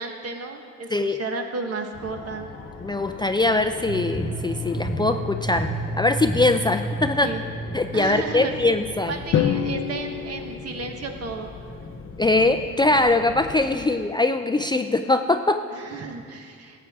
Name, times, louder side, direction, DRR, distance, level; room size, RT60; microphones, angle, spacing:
voice 1, 0.0-2.5 7.2-7.4 7.9-8.5 9.1-11.5 13.6-14.0 15.7-16.9, right 4 dB, 55° right, 4 dB, 1.3 m, -33 dB
Fixed-wing aircraft airplane, 1.9-13.9, left 4 dB, 45° left, 1.0 m, -40 dB
voice 2, 2.8-5.7 6.0-7.3 7.7-9.1 12.2-15.6, left 2 dB, 15° left, 7 dB, 0.4 m, -22 dB
sound 1, 3.9-9.9, right 1 dB, 30° right, 1.8 m, -32 dB
Drum, 9.3-11.5, left 8 dB, 65° left, 0.7 m, -26 dB
15.5 x 8.3 x 3.6 m, 2.2 s
cardioid pair, 90°, 30 cm